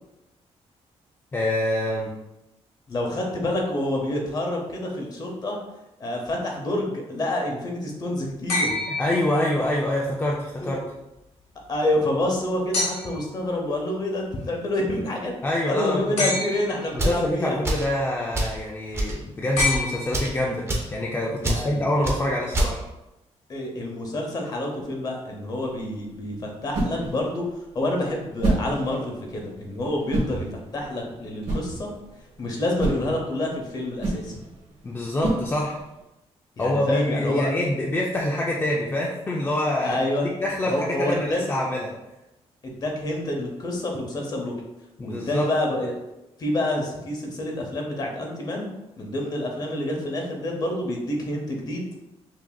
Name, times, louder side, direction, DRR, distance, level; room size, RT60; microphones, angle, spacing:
voice 1, 1.3-2.1 8.9-10.8 15.4-16.3 17.0-22.8 34.8-35.8 36.6-40.0 40.4-41.9 45.0-45.5, left 1 dB, 20° left, -3 dB, 0.4 m, -26 dB
voice 2, 2.9-5.6 6.0-8.7 10.6-10.7 11.7-15.4 15.7-17.6 21.4-21.8 23.5-27.5 27.7-31.9 32.4-34.3 36.6-37.5 39.8-40.3 40.6-41.4 42.6-44.5 45.0-45.9 46.4-48.7 49.0-51.9, left 1 dB, 35° left, 1 dB, 0.7 m, -28 dB
sound 1, 8.5-9.9 12.7-13.4 16.2-17.0 19.6-20.6 22.2-22.3, left 2 dB, 70° left, 1.2 m, -28 dB
sound 2, 16.9-17.2 17.6-17.9 18.3-18.6 18.9-19.2 19.5-19.8 20.1-20.4 20.7-20.9 21.4-21.6 22.0-22.2 22.5-22.7, right 1 dB, 20° right, 0.6 m, -25 dB
sound 3, 25.4-36.0, right 2 dB, 75° right, 1.5 m, -31 dB
5.7 x 2.7 x 2.3 m, 0.95 s
wide cardioid pair, 175°, 11 cm